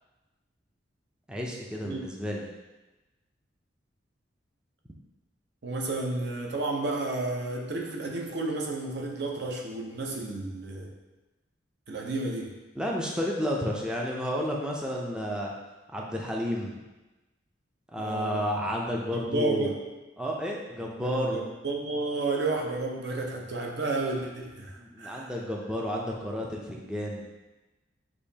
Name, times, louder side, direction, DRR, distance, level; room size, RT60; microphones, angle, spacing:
voice 1, 1.3-2.4 12.8-15.5 15.9-16.7 17.9-19.7 20.2-21.4 24.8-27.3, equal, 5° right, -2 dB, 0.4 m, -31 dB
voice 2, 5.6-10.9 11.9-12.5 18.0-18.6 19.1-19.8 20.8-25.3, right 2 dB, 60° right, 0 dB, 0.7 m, -32 dB
6.4 x 2.9 x 2.7 m, 1.1 s
head